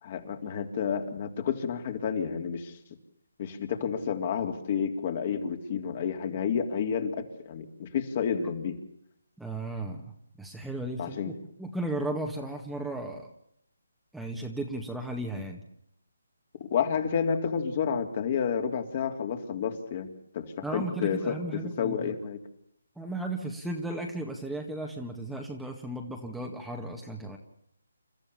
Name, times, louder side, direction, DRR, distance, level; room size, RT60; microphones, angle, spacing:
voice 1, 0.0-2.7 3.4-8.8 11.0-11.3 16.6-22.4, left 7 dB, 40° left, 5 dB, 3.4 m, -30 dB
voice 2, 9.4-10.1 10.4-11.3 11.6-13.3 14.1-15.6 20.6-22.1 23.0-27.4, right 1 dB, ahead, 0 dB, 1.9 m, -35 dB
29.5 x 14.0 x 7.1 m, 0.74 s
hypercardioid pair, 160°, 0 cm